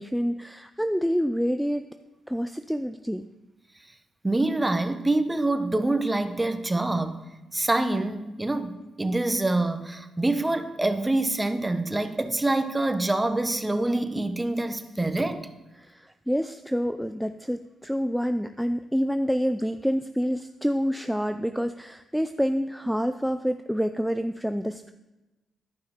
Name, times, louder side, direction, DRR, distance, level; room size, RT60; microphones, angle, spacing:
voice 1, 0.0-1.9 2.3-3.3 15.8-24.9, equal, ahead, 9 dB, 0.4 m, -27 dB
voice 2, 4.2-7.2 7.5-15.5, right 2 dB, 20° right, 9 dB, 1.0 m, -26 dB
11.5 x 5.6 x 4.9 m, 1.0 s
supercardioid pair, 50°, 0 cm